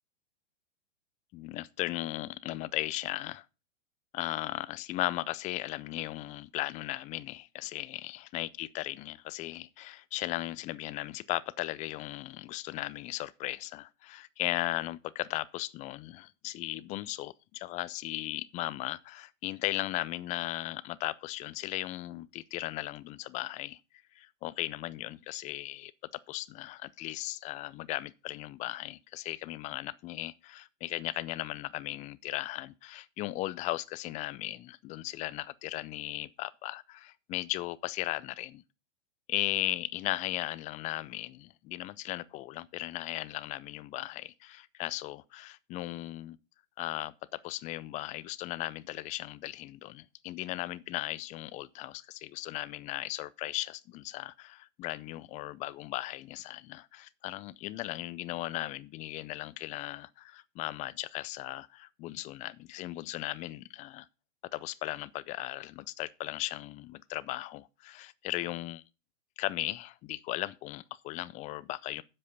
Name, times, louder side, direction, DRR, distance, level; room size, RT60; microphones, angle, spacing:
voice 1, 1.3-3.5 4.1-23.8 24.1-25.9 26.3-38.6 39.3-46.4 46.8-64.1 64.5-68.8 69.4-72.0, left 17 dB, 20° left, 0.4 m, -37 dB
9.3 x 7.6 x 5.1 m
hypercardioid pair, 120°, 36 cm